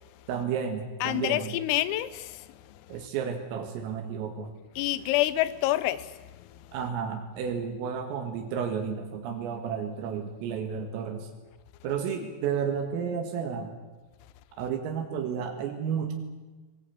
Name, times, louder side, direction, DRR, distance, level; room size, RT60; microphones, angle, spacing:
voice 1, 0.3-1.5 2.9-4.5 6.7-11.3 11.8-13.7 14.6-16.1, right 7 dB, 85° right, 4.5 m, -32 dB
voice 2, 1.0-2.5 4.8-6.1, left 15 dB, 85° left, 3.6 m, -27 dB
23.0 x 20.0 x 8.5 m
omnidirectional pair, 5.9 m